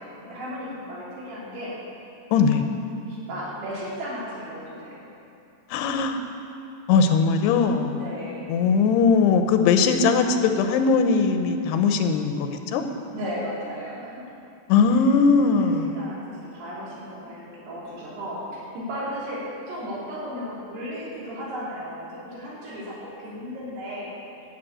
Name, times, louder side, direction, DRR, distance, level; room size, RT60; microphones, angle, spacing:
voice 1, 0.0-1.7 3.1-5.0 8.0-8.6 13.1-14.2 15.5-24.1, equal, 75° right, -7 dB, 5.2 m, -35 dB
voice 2, 2.3-2.6 5.7-6.2 6.9-8.0 8.5-12.8 14.7-15.9, left 5 dB, 85° left, 6 dB, 2.9 m, -20 dB
12.5 x 6.9 x 8.8 m, 2.7 s
omnidirectional pair, 4.7 m